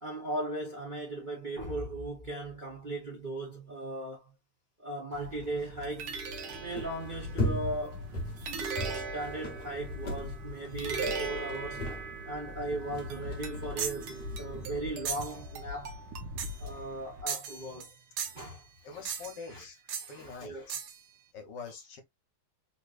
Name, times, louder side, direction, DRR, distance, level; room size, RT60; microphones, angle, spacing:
voice 1, 0.0-4.3 4.8-6.2 6.6-8.1 8.8-11.9 12.2-16.0 16.6-18.7 18.9-19.0 19.5-19.6 20.0-20.7, right 2 dB, 35° right, 0.8 m, -38 dB
sound 1, 5.1-17.2, right 2 dB, 90° right, 1.7 m, -39 dB
sound 2, 6.5-14.8, left 1 dB, 40° left, 0.9 m, -39 dB
sound 3, 13.8-14.1 15.0-15.4 16.4-16.6 17.3-17.9 18.2-18.5 19.0-19.5 19.9-20.1 20.7-21.0, right 7 dB, 65° right, 1.2 m, -36 dB
voice 2, 18.8-19.8 20.1-20.9 21.3-22.0, left 5 dB, 65° left, 1.5 m, -45 dB
3.9 x 2.9 x 2.4 m
omnidirectional pair, 2.2 m